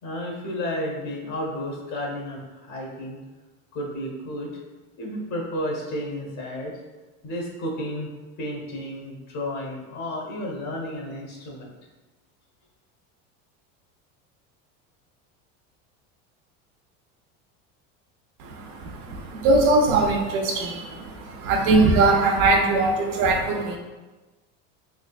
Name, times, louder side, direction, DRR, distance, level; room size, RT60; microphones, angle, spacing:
voice 1, 0.0-3.2 3.7-4.5 5.0-6.7 7.2-8.1 8.4-11.7, left 1 dB, 45° left, -1 dB, 1.2 m, -32 dB
voice 2, 18.4-23.8, right 3 dB, 70° right, 2 dB, 0.7 m, -21 dB
3.7 x 3.2 x 2.4 m, 1.2 s
supercardioid pair, 115°, 39 cm